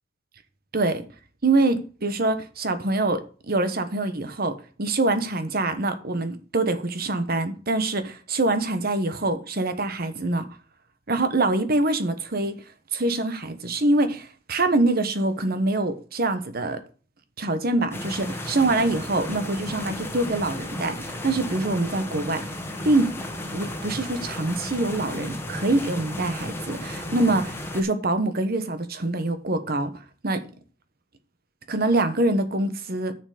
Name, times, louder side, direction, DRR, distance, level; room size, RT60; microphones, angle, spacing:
voice 1, 1.4-10.5 11.1-12.5 12.9-16.8 17.4-22.4 22.8-23.2 23.5-29.9 30.2-30.4 31.7-33.1, right 2 dB, 50° right, 1.2 m, -25 dB
sound 1, 17.9-27.8, left 1 dB, 10° left, 1.5 m, -34 dB
9.8 x 6.9 x 5.0 m
head